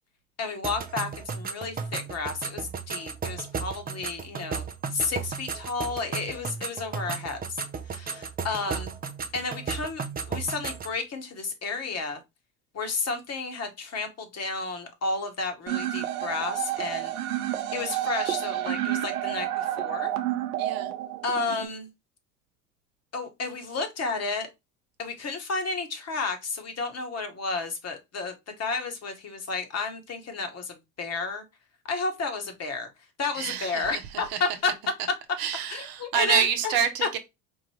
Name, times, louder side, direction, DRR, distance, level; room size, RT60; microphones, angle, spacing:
voice 1, 0.4-7.6 7.9-8.9 9.3-12.2 12.7-17.1 17.7-20.1 21.2-21.9 23.1-24.5 25.0-31.4 31.8-32.9 33.2-34.7 35.7-37.2, left 4 dB, 35° left, 1.3 m, -32 dB
sound 1, 0.6-11.0, right 5 dB, 20° right, 0.6 m, -35 dB
sound 2, 15.7-21.7, right 13 dB, 80° right, 0.7 m, -30 dB
voice 2, 20.6-20.9 33.3-33.9 34.3-34.4 35.4-37.2, right 9 dB, 55° right, 0.9 m, -27 dB
4.6 x 2.5 x 3.2 m
hypercardioid pair, 70°, 44 cm